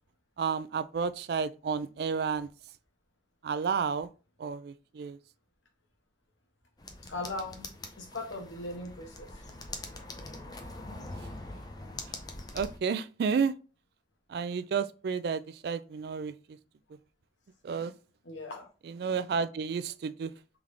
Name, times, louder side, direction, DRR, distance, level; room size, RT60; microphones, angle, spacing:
voice 1, 0.4-2.5 3.4-4.1 4.4-5.2 12.5-13.5 14.3-16.3 17.6-17.9 19.0-20.3, right 6 dB, 60° right, 0.3 m, -31 dB
sound 1, 6.8-12.8, left 2 dB, 20° left, 0.5 m, -43 dB
voice 2, 7.0-9.5 12.3-12.4 18.2-18.7, left 2 dB, 90° left, 1.2 m, -39 dB
3.7 x 3.5 x 3.2 m
head